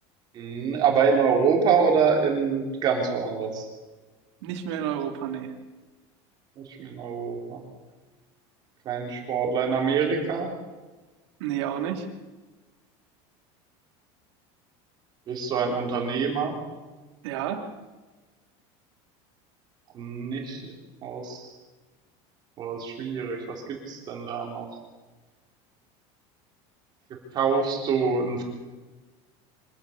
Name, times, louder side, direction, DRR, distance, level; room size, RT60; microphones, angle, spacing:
voice 1, 0.3-3.7 6.6-7.6 8.8-10.5 15.3-16.5 19.9-20.7 21.0-21.5 22.6-24.7 27.3-28.4, right 5 dB, 30° right, 1 dB, 3.8 m, -25 dB
voice 2, 4.4-5.5 11.4-12.1 17.2-17.7, right 9 dB, 80° right, 4 dB, 3.1 m, -30 dB
25.0 x 12.0 x 8.6 m, 1.2 s
cardioid pair, 175°, 14 cm